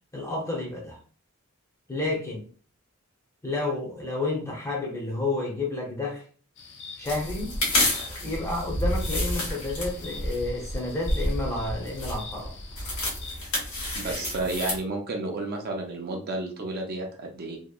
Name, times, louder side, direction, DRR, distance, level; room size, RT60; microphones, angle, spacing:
voice 1, 0.1-1.0 1.9-2.5 3.4-6.3 7.0-7.6 8.2-12.6, left 2 dB, 15° left, 0.6 m, -30 dB
sound 1, 6.6-13.4, left 4 dB, 55° left, 0.4 m, -45 dB
sound 2, 7.0-14.8, left 1 dB, 75° left, 1.1 m, -30 dB
voice 2, 13.9-17.6, right 2 dB, 45° right, 0.4 m, -31 dB
2.7 x 2.0 x 2.2 m
head